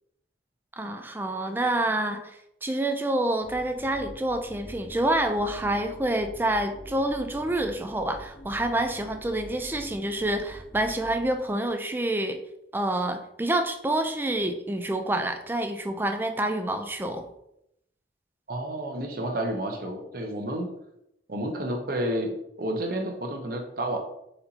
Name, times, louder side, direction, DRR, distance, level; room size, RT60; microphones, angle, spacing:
voice 1, 0.8-12.4 12.7-17.2, right 1 dB, 10° right, 6 dB, 0.3 m, -27 dB
sound 1, 3.4-11.7, equal, 30° left, 0.8 m, -46 dB
voice 2, 18.5-20.7 21.3-24.0, right 1 dB, 55° right, 2 dB, 0.8 m, -30 dB
4.3 x 2.7 x 4.0 m, 0.79 s
head